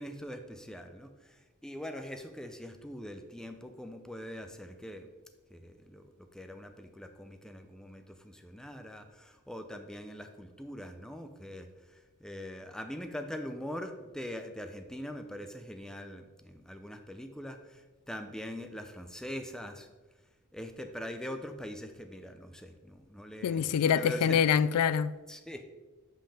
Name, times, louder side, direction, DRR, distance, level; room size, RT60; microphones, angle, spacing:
voice 1, 0.0-5.1 5.5-19.9 20.5-24.4 25.3-25.6, equal, 5° left, 0.5 m, -43 dB
voice 2, 23.4-25.1, left 7 dB, 90° left, 0.3 m, -25 dB
7.7 x 5.4 x 3.4 m
head